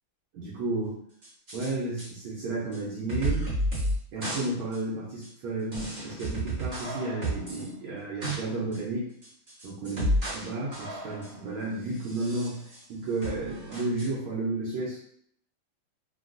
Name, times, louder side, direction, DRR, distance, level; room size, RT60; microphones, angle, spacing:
voice 1, 0.3-1.0 1.5-3.5 4.1-9.1 9.6-10.0 10.3-15.0, right 2 dB, 75° right, -6 dB, 1.5 m, -32 dB
sound 1, 1.2-1.7 2.0-2.1 2.7-2.8 3.1-4.0 4.2-4.4 4.7-4.8 5.2-5.3 5.7-7.6 8.0-8.4 8.7-8.8 9.2-10.5 10.7-11.4 12.0-12.8 13.2-14.1, right 1 dB, 30° right, 0.8 m, -31 dB
4.1 x 2.2 x 2.4 m, 0.67 s
omnidirectional pair, 2.4 m